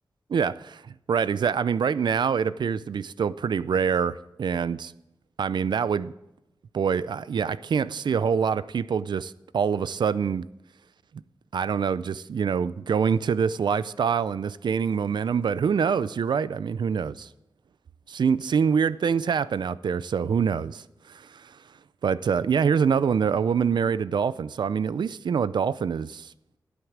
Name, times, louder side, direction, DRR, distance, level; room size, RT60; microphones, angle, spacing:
voice 1, 0.3-4.9 5.4-6.1 6.7-10.5 11.5-17.3 18.1-21.6 22.0-26.3, right 6 dB, 75° right, 0.4 m, -25 dB
15.5 x 8.1 x 7.4 m
wide cardioid pair, 95°, 8 cm